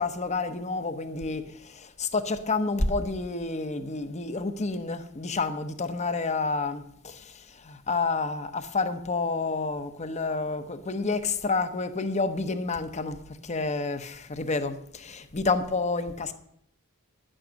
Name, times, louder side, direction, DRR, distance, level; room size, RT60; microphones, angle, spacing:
voice 1, 0.0-16.3, left 3 dB, 30° left, 0.9 m, -29 dB
10.5 x 8.8 x 6.4 m
head